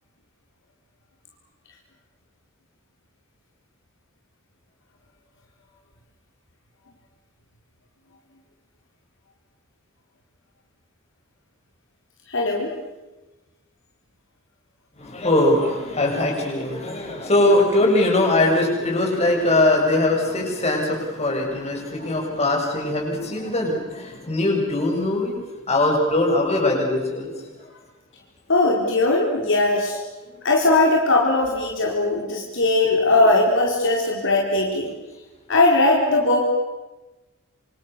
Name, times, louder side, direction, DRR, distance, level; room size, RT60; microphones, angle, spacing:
voice 1, 12.3-12.7 28.5-30.0 30.4-34.9 35.5-36.4, left 2 dB, 65° left, -1 dB, 4.5 m, -19 dB
voice 2, 15.0-25.4 25.7-27.3, left 1 dB, 30° left, 0 dB, 7.3 m, -21 dB
27.0 x 26.5 x 6.9 m, 1.1 s
head